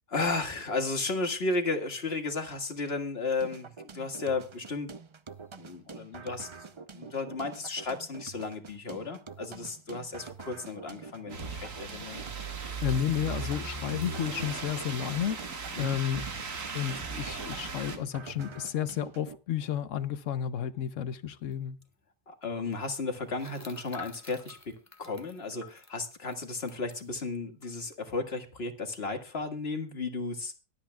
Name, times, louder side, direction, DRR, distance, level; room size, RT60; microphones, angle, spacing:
voice 1, 0.1-4.9 5.6-6.5 6.9-12.3 15.7-16.0 22.3-30.5, left 3 dB, 50° left, 1.9 m, -34 dB
sound 1, 3.4-19.4, right 5 dB, 40° right, 0.4 m, -46 dB
sound 2, 11.3-18.0, right 4 dB, 80° right, 2.0 m, -38 dB
voice 2, 12.8-15.4 15.8-16.3 16.7-21.8, left 9 dB, 75° left, 1.1 m, -32 dB
sound 3, 21.5-21.6 21.8-21.9 23.3-27.0 27.6-27.7 28.0-28.3, left 4 dB, 15° left, 1.0 m, -49 dB
23.0 x 8.6 x 2.3 m
omnidirectional pair, 1.3 m